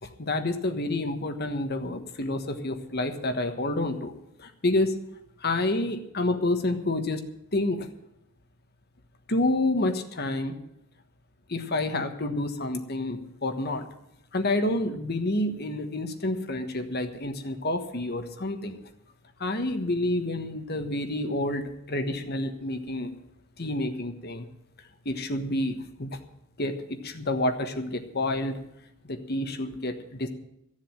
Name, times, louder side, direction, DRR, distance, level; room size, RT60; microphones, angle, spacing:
voice 1, 0.0-4.1 4.4-5.0 5.4-7.9 9.3-10.6 11.5-13.9 14.3-18.8 19.4-23.1 23.6-24.5 25.0-26.1 26.6-28.6 29.0-30.3, left 2 dB, 45° left, 7 dB, 1.3 m, -29 dB
15.0 x 7.5 x 8.9 m, 0.82 s
head